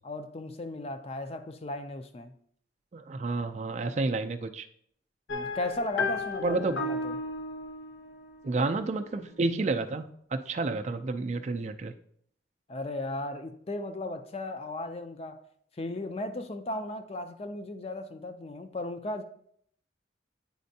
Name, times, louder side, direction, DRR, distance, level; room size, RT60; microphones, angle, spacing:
voice 1, 0.0-2.3 5.3-7.2 12.7-15.4 15.8-19.2, left 2 dB, 30° left, 0.4 m, -36 dB
voice 2, 2.9-4.7 6.4-6.8 8.4-11.9, right 3 dB, 35° right, 0.3 m, -30 dB
sound 1, 5.3-9.1, left 3 dB, 90° left, 0.8 m, -35 dB
9.2 x 4.3 x 2.7 m
head